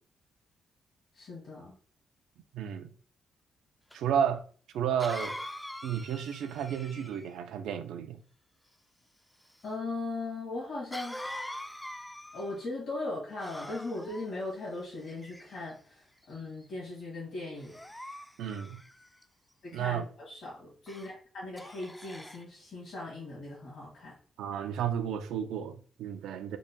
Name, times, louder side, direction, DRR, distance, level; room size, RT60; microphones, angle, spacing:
voice 1, 1.2-1.8 9.6-11.2 12.3-17.8 19.6-24.2, left 2 dB, 60° left, 1.7 m, -39 dB
voice 2, 2.5-2.9 3.9-4.4 4.7-5.4 5.8-8.2 18.4-18.8 19.7-20.1 24.4-26.6, right 8 dB, 85° right, 0.4 m, -32 dB
Cough, 3.9-4.0 5.0-7.4 10.9-12.7 13.4-14.3 15.0-15.7 16.3-16.6 17.6-19.2 20.9-21.1 21.6-22.4, left 1 dB, 5° left, 0.3 m, -43 dB
3.9 x 2.1 x 3.6 m
cardioid pair, 70°, 0 cm